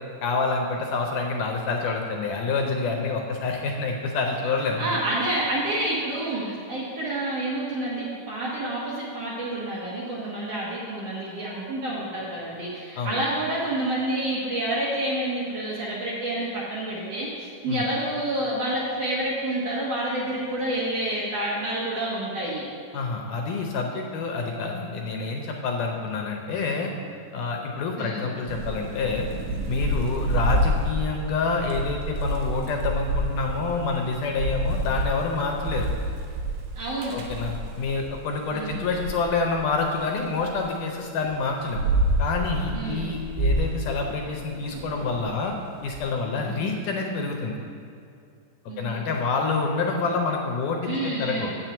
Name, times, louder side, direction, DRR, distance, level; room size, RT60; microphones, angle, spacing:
voice 1, 0.2-4.9 13.0-13.2 17.7-17.8 22.9-26.9 27.3-29.3 29.7-35.9 37.1-41.8 42.2-45.6 45.8-47.6 48.8-51.5, left 4 dB, 75° left, 2 dB, 2.1 m, -27 dB
voice 2, 4.8-22.6 28.0-28.3 36.8-37.2 38.5-38.8 42.7-43.1 46.3-46.7 48.7-49.1 50.9-51.6, right 1 dB, 60° right, -5 dB, 1.8 m, -29 dB
Thunder / Rain, 28.5-38.2 38.6-40.6 41.2-46.0, right 1 dB, 90° right, 2.8 m, -28 dB
7.7 x 6.0 x 7.9 m, 2.4 s
omnidirectional pair, 4.1 m